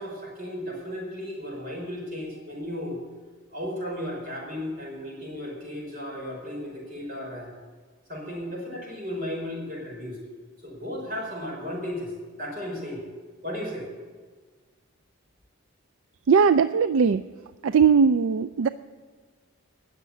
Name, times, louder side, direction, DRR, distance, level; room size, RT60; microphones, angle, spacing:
voice 1, 0.0-3.0 3.5-7.5 8.1-10.2 10.6-12.1 12.4-13.0 13.4-13.9, left 1 dB, 40° right, -2 dB, 5.0 m, -34 dB
voice 2, 16.3-17.2 17.6-18.7, right 6 dB, 65° right, 13 dB, 0.3 m, -19 dB
19.0 x 6.7 x 8.4 m, 1.5 s
head